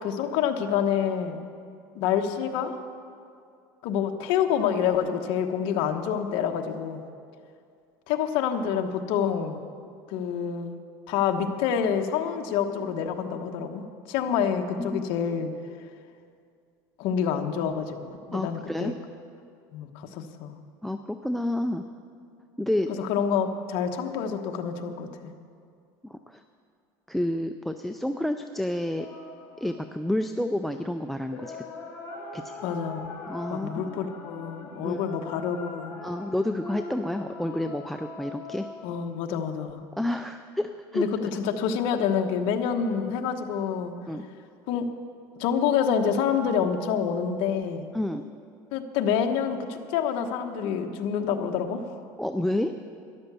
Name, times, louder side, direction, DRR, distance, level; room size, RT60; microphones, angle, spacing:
voice 1, 0.0-1.4 1.9-2.7 3.8-7.0 8.1-9.6 10.1-10.7 11.1-15.5 17.0-18.9 19.7-20.6 22.9-25.3 32.6-33.0 33.5-35.9 38.8-39.8 40.9-43.9 44.7-44.9 45.4-47.9 48.7-52.0, left 7 dB, 65° left, 5 dB, 1.1 m, -27 dB
voice 2, 18.3-18.9 20.8-21.8 22.6-23.0 26.0-26.4 27.1-29.1 29.6-31.6 32.3-32.6 33.3-33.7 34.8-35.0 36.0-38.7 40.0-41.1 44.1-44.3 47.9-48.3 52.2-52.7, left 1 dB, ahead, 8 dB, 0.4 m, -29 dB
sound 1, 29.0-30.3 31.2-39.0, left 3 dB, 25° left, 3.0 m, -41 dB
13.0 x 11.0 x 6.8 m, 2.4 s
cardioid pair, 145°, 10 cm